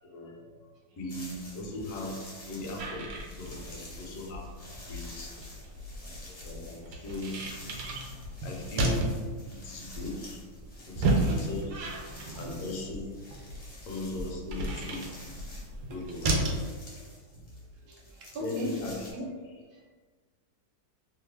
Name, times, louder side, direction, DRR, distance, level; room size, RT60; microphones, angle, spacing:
voice 1, 0.0-0.5 1.0-4.6 4.9-5.3 6.0-6.1 6.4-7.6 8.4-10.4 10.9-11.9 12.4-13.2 13.9-15.2 15.9-16.3 18.4-19.5, left 1 dB, 65° left, 0 dB, 0.9 m, -39 dB
sound 1, 1.1-19.1, left 1 dB, 40° left, 0.6 m, -49 dB
sound 2, 2.8-16.7, right 1 dB, 85° right, 1.2 m, -33 dB
voice 2, 10.7-11.2 12.2-12.3 14.2-14.3 15.5-15.6 16.9-17.1 17.3-17.4 17.9-18.7 19.1-19.2, right 1 dB, 55° right, -3 dB, 0.6 m, -41 dB
2.9 x 2.2 x 3.2 m, 1.4 s
omnidirectional pair, 1.7 m